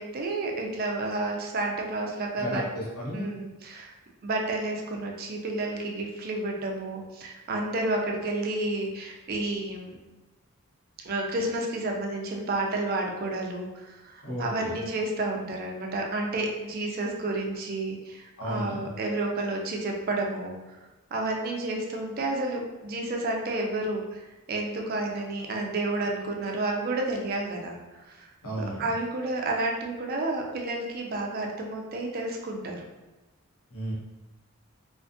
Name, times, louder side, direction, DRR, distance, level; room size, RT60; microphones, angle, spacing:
voice 1, 0.0-2.6 3.1-3.9 4.2-10.0 11.0-20.8 21.1-24.2 24.5-28.3 28.8-32.8, right 2 dB, 45° right, 0 dB, 0.3 m, -31 dB
voice 2, 2.4-3.2 14.2-14.8 18.4-18.9 28.4-28.9 33.7-33.9, equal, 80° left, -6 dB, 1.0 m, -33 dB
2.4 x 2.4 x 2.5 m, 1.1 s
head